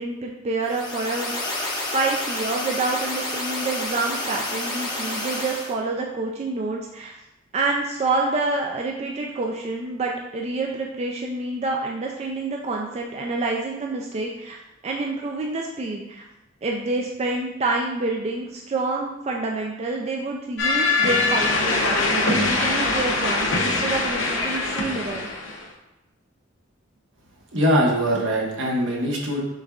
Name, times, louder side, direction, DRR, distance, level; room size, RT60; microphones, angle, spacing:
voice 1, 0.0-7.1 7.5-14.6 14.8-16.2 16.6-25.3, right 3 dB, 35° right, 0 dB, 0.3 m, -27 dB
sound 1, 0.6-5.7, left 2 dB, 20° left, 0.9 m, -30 dB
sound 2, 20.6-25.6, left 3 dB, 75° left, 0.7 m, -23 dB
voice 2, 27.5-29.4, equal, 70° right, -2 dB, 1.0 m, -22 dB
6.2 x 3.5 x 2.3 m, 0.96 s
head